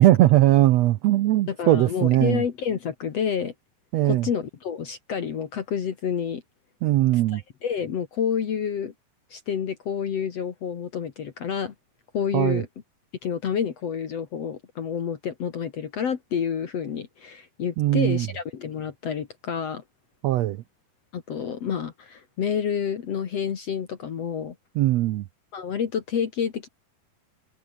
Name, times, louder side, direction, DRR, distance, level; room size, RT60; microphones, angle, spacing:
voice 1, 0.0-2.4 3.9-4.3 6.8-7.4 12.3-12.6 17.8-18.3 20.2-20.6 24.7-25.2, right 15 dB, 75° right, 1.5 m, -20 dB
voice 2, 1.5-3.5 4.0-6.4 7.3-8.9 9.3-11.7 12.1-12.7 13.2-19.8 21.1-24.5 25.5-26.7, left 7 dB, 55° left, 2.7 m, -29 dB
omnidirectional pair, 3.8 m